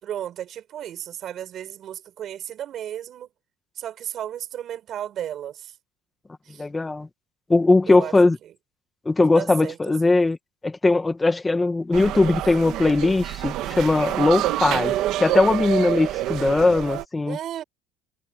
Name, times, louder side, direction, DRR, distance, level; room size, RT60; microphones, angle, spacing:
voice 1, 0.0-3.3 3.8-5.8 6.4-6.7 7.9-8.2 8.4-8.5 9.3-9.8 17.2-17.6, right 10 dB, 45° right, 5.5 m, -34 dB
voice 2, 6.6-7.1 7.5-8.4 9.1-10.4 10.6-17.4, left 3 dB, 15° left, 2.0 m, -20 dB
sound 1, 11.9-17.1, right 14 dB, 60° right, 2.0 m, -27 dB
cardioid pair, 135°, 0 cm